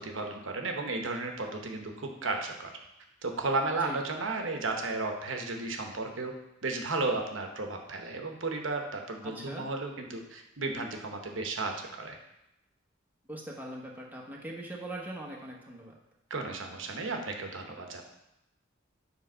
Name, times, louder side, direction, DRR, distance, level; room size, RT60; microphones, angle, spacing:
voice 1, 0.0-2.7 3.2-6.3 6.6-12.2 16.3-18.0, right 3 dB, 70° right, 3 dB, 1.0 m, -34 dB
voice 2, 9.2-9.7 13.3-15.9, right 1 dB, 10° right, -3 dB, 1.0 m, -41 dB
7.5 x 3.4 x 5.5 m, 0.87 s
head